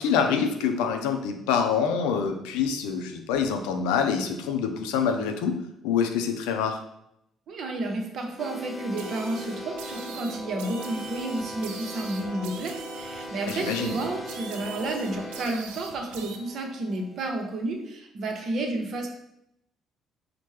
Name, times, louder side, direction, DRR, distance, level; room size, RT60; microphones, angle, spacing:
voice 1, 0.0-5.5 5.8-6.8 13.5-13.9, left 6 dB, 80° left, 5 dB, 0.4 m, -26 dB
voice 2, 7.5-19.1, right 2 dB, 60° right, 3 dB, 0.7 m, -31 dB
sound 1, 8.4-17.3, left 1 dB, 25° left, 0.5 m, -39 dB
sound 2, 9.0-16.4, right 6 dB, 80° right, 0.3 m, -43 dB
4.3 x 2.1 x 3.1 m, 0.79 s
hypercardioid pair, 50°, 0 cm